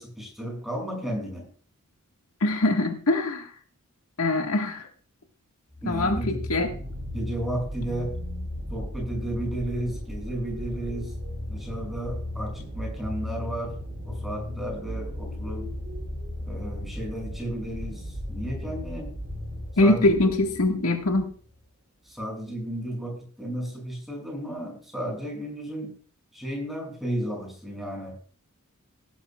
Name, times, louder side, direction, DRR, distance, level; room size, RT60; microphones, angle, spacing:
voice 1, 0.0-1.5 5.8-6.4 7.1-8.2 8.7-11.1 11.5-13.8 14.0-15.7 16.5-19.1 19.8-20.3 22.0-26.0 26.3-28.1, right 1 dB, ahead, -1 dB, 6.5 m, -33 dB
voice 2, 2.4-3.5 4.2-4.9 5.9-6.7 19.8-21.3, left 2 dB, 75° left, 3 dB, 1.7 m, -23 dB
sound 1, 5.7-21.3 22.1-22.2, left 1 dB, 45° right, 4.1 m, -35 dB
17.5 x 12.0 x 2.4 m, 0.43 s
head